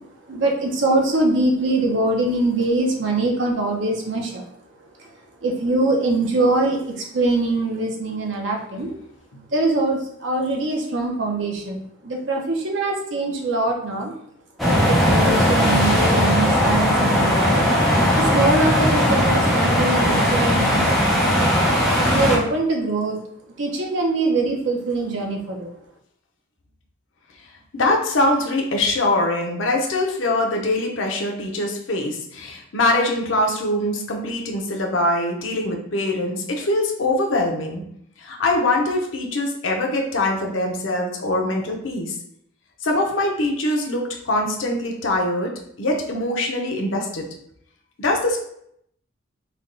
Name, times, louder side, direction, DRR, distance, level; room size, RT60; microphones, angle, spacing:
voice 1, 0.3-4.4 5.4-6.8 7.1-8.9 9.5-11.8 12.0-14.1 14.7-17.6 18.1-21.3 22.1-23.2 23.6-25.7, right 2 dB, 70° right, 0 dB, 0.7 m, -23 dB
sound 1, 14.6-22.4, equal, ahead, 0.6 m, -18 dB
voice 2, 27.7-37.8 38.2-42.1 42.8-47.3 48.0-48.4, left 2 dB, 80° left, 1 dB, 0.7 m, -23 dB
3.4 x 2.2 x 3.7 m, 0.71 s
head